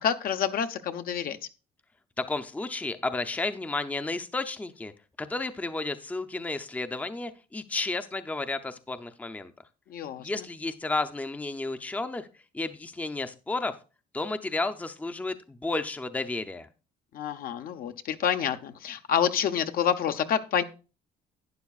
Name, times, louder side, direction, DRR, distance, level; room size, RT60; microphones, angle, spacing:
voice 1, 0.0-1.4 9.9-10.4 17.1-20.6, left 8 dB, 60° left, 9 dB, 0.8 m, -28 dB
voice 2, 2.2-4.9 5.2-9.5 10.2-12.3 12.5-13.8 14.1-16.7, left 3 dB, 10° left, 9 dB, 0.6 m, -32 dB
11.5 x 9.1 x 2.4 m, 0.33 s
cardioid pair, 110°, 17 cm